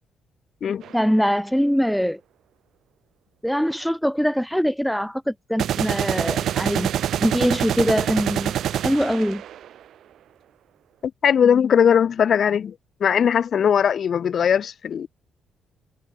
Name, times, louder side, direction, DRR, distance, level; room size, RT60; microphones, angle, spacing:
sound 1, 0.8-1.0 5.6-9.8, right 11 dB, 70° right, 2.8 m, -25 dB
voice 1, 0.9-2.2 3.4-6.9 7.2-8.5 8.8-9.4, equal, ahead, 1.4 m, -22 dB
voice 2, 11.0-12.7 13.0-15.1, left 8 dB, 55° left, 2.8 m, -19 dB
cardioid pair, 90°, 0 cm